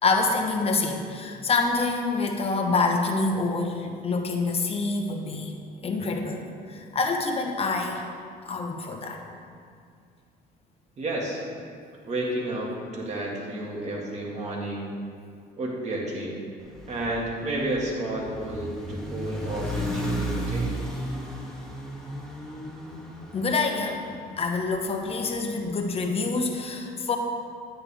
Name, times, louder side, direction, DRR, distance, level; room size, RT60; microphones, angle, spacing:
voice 1, 0.0-5.5 5.8-8.1 8.4-9.2 23.3-24.0 24.4-27.2, left 3 dB, 35° left, 3 dB, 1.1 m, -26 dB
voice 2, 11.0-11.4 12.1-14.9 15.6-16.4 16.9-20.7, right 1 dB, 40° right, -2 dB, 2.3 m, -31 dB
sound 1, 16.6-24.9, equal, 5° left, 1.6 m, -34 dB
10.0 x 9.3 x 3.6 m, 2.2 s
cardioid pair, 110°, 17 cm